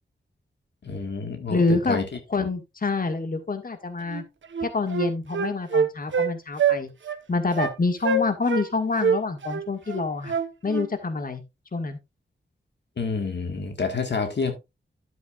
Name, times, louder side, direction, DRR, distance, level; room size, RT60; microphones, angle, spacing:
voice 1, 0.8-2.0 13.0-14.6, left 4 dB, 65° left, 5 dB, 1.6 m, -28 dB
voice 2, 1.5-2.0 2.3-4.2 4.6-6.9 7.3-10.3 10.6-11.4 11.7-12.0, left 3 dB, 50° left, 7 dB, 1.8 m, -26 dB
Wind instrument woodwind instrument, 4.1-4.2 4.5-6.3 6.6-6.8 7.1-7.2 7.6-7.7 8.0-8.7 9.0-10.9, right 5 dB, 80° right, 1.1 m, -24 dB
11.5 x 7.9 x 2.4 m, 0.22 s
wide cardioid pair, 70°, 19 cm